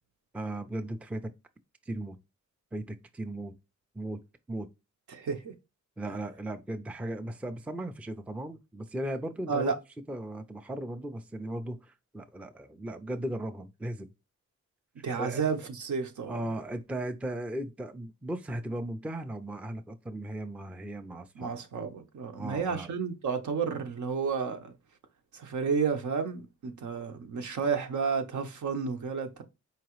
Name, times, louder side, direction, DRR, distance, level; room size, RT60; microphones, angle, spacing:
voice 1, 0.3-1.3 1.9-2.2 2.7-3.5 4.0-4.2 4.5-4.7 6.0-9.7 10.1-14.1 15.0-15.4 16.3-21.5 22.4-22.9, right 1 dB, 5° right, 0.4 m, -37 dB
voice 2, 5.1-5.5 9.5-9.8 15.0-16.4 21.4-24.7 25.3-29.4, right 5 dB, 70° right, 0.8 m, -31 dB
4.6 x 2.9 x 3.0 m
wide cardioid pair, 105°, 31 cm